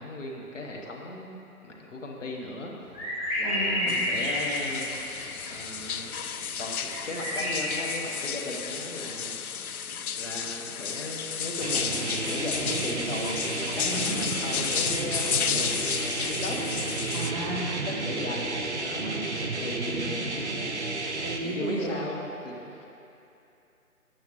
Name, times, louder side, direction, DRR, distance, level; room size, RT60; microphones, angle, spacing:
voice 1, 0.0-1.4 1.6-2.8 3.4-4.9 5.5-6.1 6.6-9.4 9.7-9.8 10.2-16.6 17.7-19.3 19.6-20.6 21.5-22.2 22.4-22.9, left 1 dB, 55° left, -1 dB, 1.3 m, -37 dB
sound 1, 2.9-5.9 6.2-7.8, left 1 dB, 5° left, 2.0 m, -30 dB
voice 2, 3.4-4.0 13.8-14.3 17.1-17.7 19.0-20.2 21.0-22.1, right 2 dB, 25° right, -8 dB, 1.0 m, -35 dB
sound 2, 3.9-17.3, left 7 dB, 75° left, 0.5 m, -33 dB
sound 3, 11.6-21.4, right 3 dB, 50° right, 0.9 m, -32 dB
12.5 x 8.5 x 3.0 m, 2.8 s
figure-of-eight pair, 145°, 44 cm